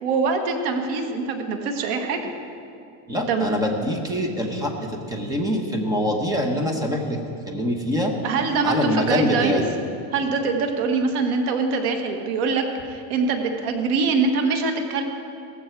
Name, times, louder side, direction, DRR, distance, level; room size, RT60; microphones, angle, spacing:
voice 1, 0.0-2.2 3.3-3.5 8.2-9.6 10.1-15.0, right 4 dB, 85° right, 5 dB, 1.7 m, -23 dB
voice 2, 3.1-7.2 7.5-8.1 8.6-9.7, equal, 10° right, 3 dB, 1.0 m, -24 dB
16.5 x 14.5 x 4.6 m, 2.5 s
cardioid pair, 170°, 43 cm